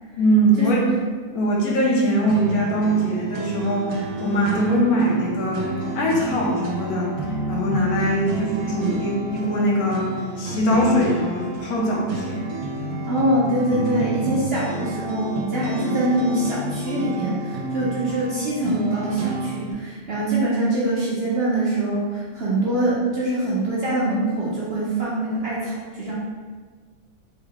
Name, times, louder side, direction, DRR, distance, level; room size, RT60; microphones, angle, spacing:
voice 1, 0.2-0.9 1.3-7.1 7.5-12.5, equal, 75° left, -3 dB, 1.2 m, -22 dB
sound 1, 2.3-19.7, right 3 dB, 85° right, 1.1 m, -30 dB
voice 2, 13.0-26.1, right 1 dB, 55° right, -7 dB, 0.8 m, -24 dB
3.5 x 2.2 x 3.7 m, 1.5 s
omnidirectional pair, 1.6 m